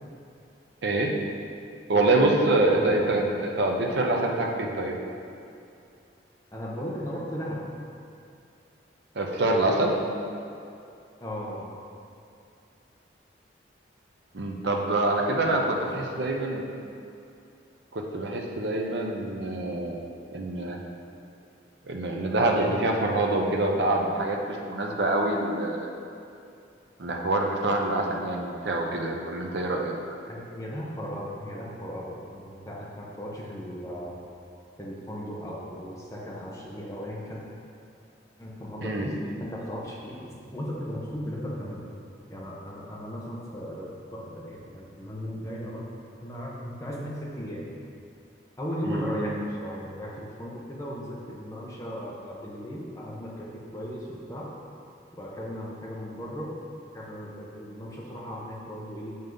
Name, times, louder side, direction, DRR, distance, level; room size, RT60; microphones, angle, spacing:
voice 1, 0.8-1.1 1.9-5.0 9.1-10.0 14.3-16.6 17.9-20.0 20.3-20.8 21.8-25.9 27.0-29.9 38.8-39.1 48.8-49.1, right 2 dB, 70° right, 1 dB, 0.7 m, -25 dB
voice 2, 2.7-3.1 6.5-7.6 11.2-11.7 15.4-16.0 30.3-34.2 34.8-37.4 38.4-39.1 39.4-41.8 42.3-45.8 46.2-47.6 48.6-54.5 55.1-56.6 56.9-59.2, equal, 15° left, -5 dB, 0.9 m, -36 dB
6.8 x 5.4 x 3.9 m, 2.6 s
head